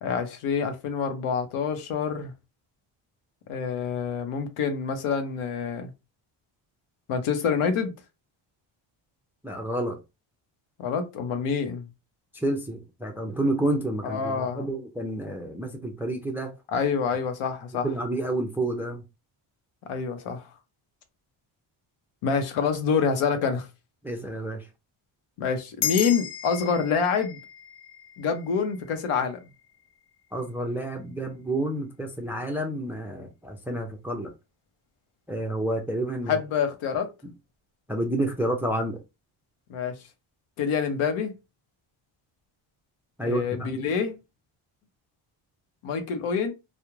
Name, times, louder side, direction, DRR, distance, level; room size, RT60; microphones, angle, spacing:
voice 1, 0.0-2.3 3.5-5.9 7.1-7.9 10.8-11.8 14.0-14.7 16.7-17.9 19.9-20.4 22.2-23.7 25.4-27.4 28.2-29.4 36.2-37.1 39.7-39.9 40.6-41.3 43.2-44.2 45.8-46.5, left 6 dB, 80° left, 0.8 m, -27 dB
voice 2, 9.4-10.0 12.3-16.5 17.8-19.0 24.0-24.7 30.3-34.3 35.3-36.4 37.2-37.3 37.9-39.0 43.2-43.9, right 1 dB, 5° right, 0.3 m, -29 dB
sound 1, 25.8-30.5, left 10 dB, 55° left, 0.5 m, -36 dB
2.3 x 2.1 x 3.0 m
cardioid pair, 95°, 50 cm